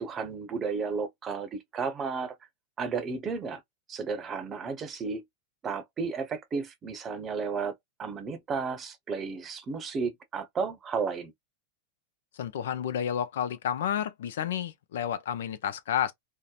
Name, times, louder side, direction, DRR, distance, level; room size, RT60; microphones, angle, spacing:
voice 1, 0.0-2.3 2.8-3.6 3.9-5.2 5.6-11.3, right 5 dB, 30° right, 0.7 m, -33 dB
voice 2, 12.4-16.1, left 9 dB, 75° left, 0.4 m, -30 dB
2.8 x 2.0 x 2.3 m
hypercardioid pair, 115°, 0 cm